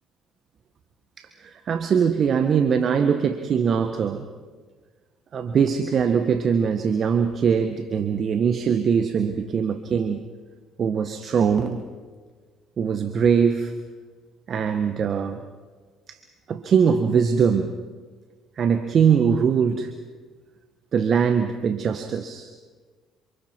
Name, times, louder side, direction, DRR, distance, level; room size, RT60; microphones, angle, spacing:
voice 1, 1.2-4.3 5.3-10.2 10.8-11.8 12.8-13.7 14.5-15.4 16.1-16.2 16.5-17.7 18.6-19.9 20.9-22.5, right 6 dB, 50° right, 8 dB, 1.5 m, -22 dB
28.0 x 27.0 x 4.7 m, 1.5 s
hypercardioid pair, 55°, 0 cm